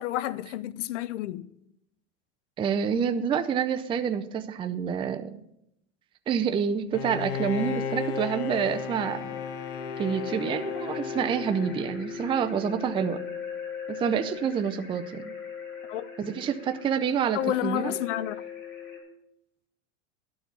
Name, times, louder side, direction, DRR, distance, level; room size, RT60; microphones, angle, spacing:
voice 1, 0.0-1.5 15.9-16.1 17.3-18.4, left 13 dB, 85° left, 0.6 m, -30 dB
voice 2, 2.6-5.4 6.3-9.4 10.0-13.2 13.9-15.3 16.2-17.9, right 7 dB, 15° right, 0.4 m, -28 dB
Bowed string instrument, 6.9-12.5, left 6 dB, 65° left, 1.0 m, -35 dB
sound 1, 7.6-19.0, left 7 dB, 30° left, 3.7 m, -39 dB
11.5 x 4.7 x 8.1 m
supercardioid pair, 125°, 35 cm